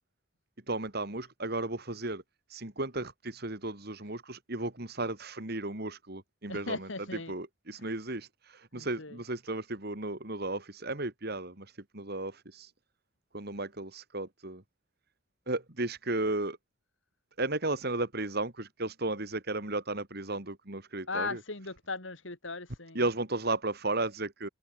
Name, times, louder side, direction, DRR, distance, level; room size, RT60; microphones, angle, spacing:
voice 1, 0.7-2.2 2.5-6.9 7.3-12.7 13.3-14.6 15.5-16.6 17.4-21.4 22.9-24.5, right 2 dB, 50° right, 2.9 m, -34 dB
voice 2, 6.5-7.3 7.8-7.9 8.7-9.2 21.1-23.0, left 3 dB, 70° left, 4.3 m, -38 dB
open air
head